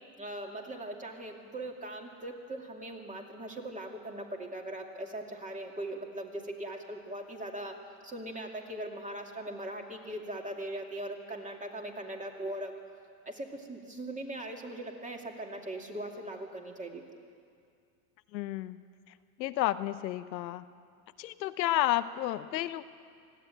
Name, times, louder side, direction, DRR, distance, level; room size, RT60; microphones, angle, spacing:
voice 1, 0.2-12.7 13.3-17.0, right 1 dB, 15° right, 2 dB, 2.5 m, -40 dB
voice 2, 18.3-18.8 19.4-20.6 21.2-22.8, left 14 dB, 90° left, 12 dB, 0.9 m, -31 dB
20.0 x 15.0 x 9.2 m, 2.3 s
supercardioid pair, 110°, 49 cm